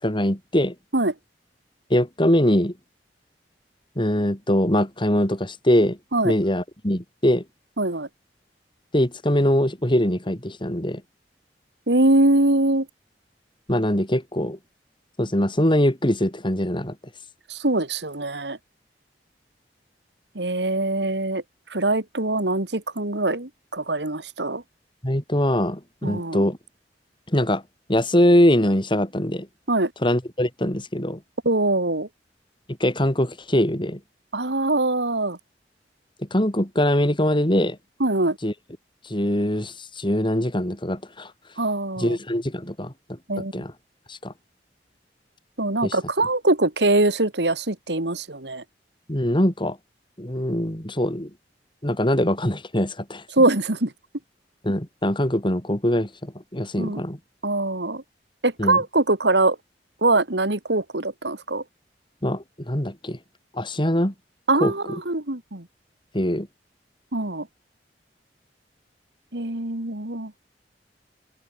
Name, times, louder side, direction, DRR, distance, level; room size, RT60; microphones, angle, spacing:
voice 1, 0.0-0.7 1.9-2.7 3.9-6.0 6.2-7.4 8.9-11.0 13.7-14.6 15.2-16.9 25.0-26.6 27.3-27.6 27.9-29.5 30.0-31.2 32.8-34.0 36.2-37.8 38.4-38.5 39.0-41.3 42.0-43.7 44.1-44.3 45.8-45.9 49.1-49.8 50.2-51.3 51.8-53.2 54.6-57.2 58.6-58.8 62.2-63.2 63.5-64.1 64.6-65.0 66.1-66.5, left 1 dB, 30° left, 5.1 m, -22 dB
voice 2, 7.8-8.1 11.9-12.9 17.5-18.6 20.3-21.4 21.7-24.6 26.0-26.4 29.7-29.9 31.4-32.1 34.3-35.4 38.0-38.4 41.6-42.2 43.3-43.6 45.6-48.6 53.3-53.9 56.8-57.0 57.4-58.0 58.4-59.6 60.0-61.6 64.5-65.6 67.1-67.5 69.3-70.3, right 2 dB, 75° right, 2.8 m, -23 dB
open air
head